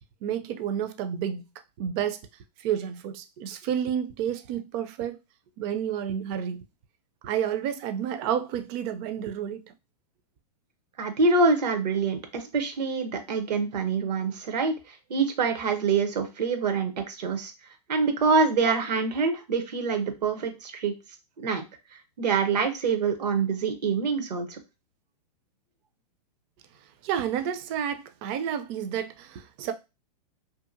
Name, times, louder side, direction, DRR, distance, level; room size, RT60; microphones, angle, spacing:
voice 1, 0.2-1.4 1.8-2.2 2.6-5.2 5.6-6.6 7.2-9.6 27.0-29.7, right 9 dB, 35° right, 0.4 m, -30 dB
voice 2, 11.0-17.5 17.9-20.9 21.4-21.6 22.2-24.6, right 4 dB, 80° right, 0.8 m, -25 dB
2.7 x 2.4 x 2.5 m
hypercardioid pair, 125°, 21 cm